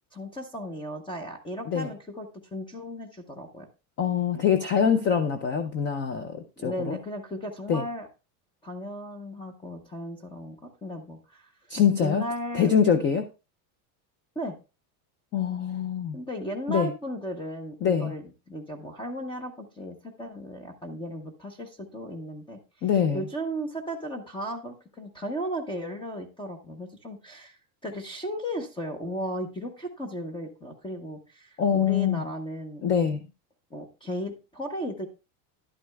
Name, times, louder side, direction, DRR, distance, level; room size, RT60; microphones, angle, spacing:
voice 1, 0.1-3.7 6.6-8.1 8.6-11.5 12.0-12.7 14.4-14.5 16.1-22.6 23.1-33.2 33.7-35.1, equal, 10° left, 5 dB, 0.8 m, -35 dB
voice 2, 4.0-7.0 7.7-7.8 11.7-12.2 12.5-13.3 15.3-16.2 16.7-16.9 17.8-18.1 22.8-23.2 31.6-32.2 32.8-33.2, left 7 dB, 25° left, 9 dB, 0.5 m, -24 dB
11.0 x 9.4 x 2.3 m, 0.30 s
cardioid pair, 160°, 44 cm